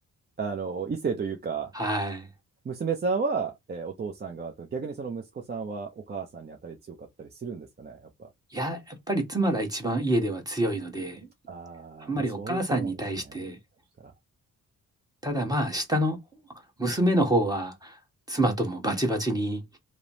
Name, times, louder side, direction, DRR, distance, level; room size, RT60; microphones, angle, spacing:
voice 1, 0.4-1.7 2.6-8.3 11.5-13.0 13.3-13.4, right 5 dB, 30° right, 0.5 m, -33 dB
voice 2, 1.7-2.3 8.5-11.3 12.1-13.6 15.2-16.2 16.8-18.0 18.3-19.8, right 1 dB, 10° right, 1.0 m, -27 dB
3.0 x 2.0 x 2.6 m
cardioid pair, 90°, 35 cm